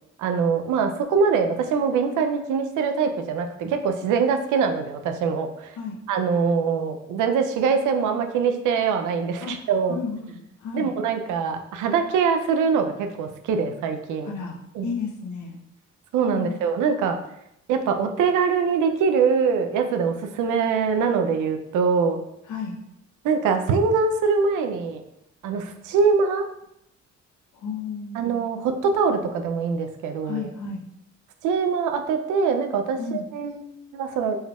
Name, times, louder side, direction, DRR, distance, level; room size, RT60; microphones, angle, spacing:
voice 1, 0.2-5.7 6.1-10.0 10.7-14.3 14.8-14.9 16.1-17.2 17.7-22.2 23.2-25.0 25.4-26.4 28.2-30.4 31.4-34.4, right 5 dB, 85° right, 6 dB, 0.5 m, -23 dB
voice 2, 9.4-10.9 14.3-15.6 16.3-16.6 22.5-22.8 27.5-28.3 30.2-30.8 33.0-33.2, left 5 dB, 70° left, 1 dB, 0.9 m, -33 dB
4.3 x 3.4 x 2.3 m, 0.78 s
cardioid pair, 90°, 30 cm